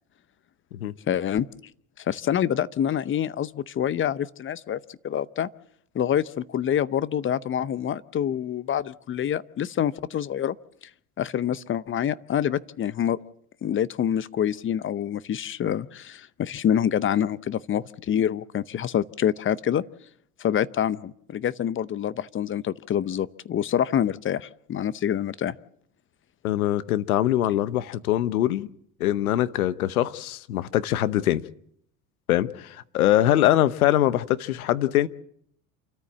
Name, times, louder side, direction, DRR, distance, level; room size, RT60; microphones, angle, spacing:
voice 1, 1.1-1.5 2.0-5.5 5.9-10.6 11.2-13.2 13.6-19.8 20.4-25.6, left 9 dB, 30° left, 0.7 m, -26 dB
voice 2, 26.4-28.7 29.0-31.4 32.3-35.1, left 13 dB, 80° left, 1.1 m, -23 dB
28.0 x 13.5 x 7.5 m
hypercardioid pair, 85°, 43 cm